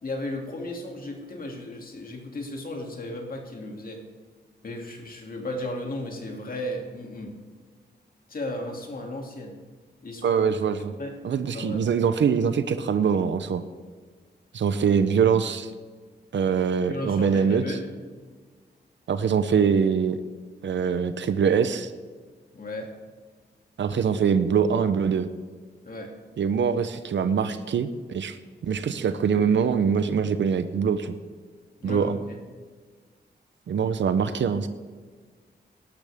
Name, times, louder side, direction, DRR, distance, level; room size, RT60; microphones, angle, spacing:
voice 1, 0.0-4.0 4.6-7.3 8.3-9.6 10.0-10.5 10.8-11.1 11.5-11.9 16.9-17.8 22.5-22.9 25.8-26.1 31.8-32.4, left 1 dB, 50° left, 1 dB, 2.6 m, -35 dB
voice 2, 10.2-10.9 11.2-13.6 14.5-15.7 16.3-17.6 19.1-20.2 20.6-21.9 23.8-25.3 26.4-31.1 31.8-32.2 33.7-34.7, right 6 dB, 85° right, 11 dB, 0.7 m, -23 dB
18.5 x 12.0 x 3.6 m, 1.5 s
wide cardioid pair, 105°, 19 cm